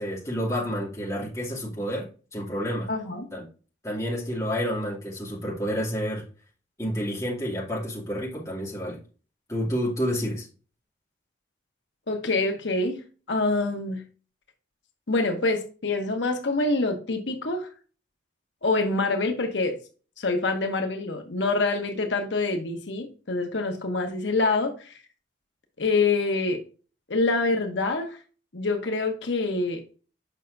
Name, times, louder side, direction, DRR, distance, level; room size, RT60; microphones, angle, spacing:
voice 1, 0.0-2.9 3.3-3.4 3.8-6.2 6.8-9.0 9.5-10.5, equal, 15° left, -5 dB, 2.6 m, -29 dB
voice 2, 2.9-3.3 12.1-13.0 13.3-14.0 15.1-17.7 18.6-19.8 20.2-25.0 25.8-26.6 27.1-28.2 28.5-29.8, left 3 dB, 85° left, 4 dB, 1.1 m, -26 dB
7.3 x 5.8 x 2.7 m, 0.37 s
head